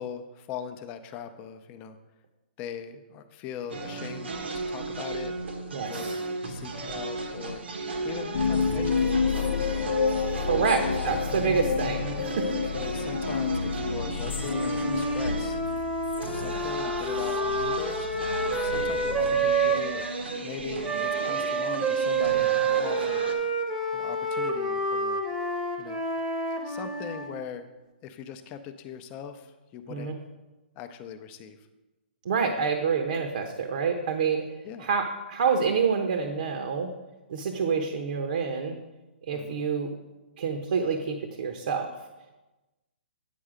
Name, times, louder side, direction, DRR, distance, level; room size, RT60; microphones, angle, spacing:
voice 1, 0.0-2.0 2.6-4.3 4.7-5.4 5.9-7.6 8.0-9.7 10.4-10.7 12.7-15.6 16.3-18.1 18.5-20.1 20.4-23.3 23.9-25.2 25.8-26.0 26.6-27.7 28.0-30.1 30.8-31.6 34.6-34.9 39.3-39.6, left 8 dB, 25° left, 9 dB, 0.6 m, -40 dB
sound 1, 3.7-23.3, right 3 dB, 90° right, 1.3 m, -35 dB
voice 2, 5.7-6.2 10.4-12.7 29.9-30.2 32.2-34.5 34.8-36.9 37.3-38.8 39.3-39.9 40.4-41.9, right 5 dB, 60° right, 5 dB, 0.9 m, -27 dB
sound 2, 8.3-19.9, left 6 dB, 80° left, 0.5 m, -30 dB
Wind instrument woodwind instrument, 14.4-20.1 20.8-27.3, right 3 dB, 10° right, 0.9 m, -28 dB
9.2 x 5.4 x 5.0 m, 1.1 s
hypercardioid pair, 160°, 6 cm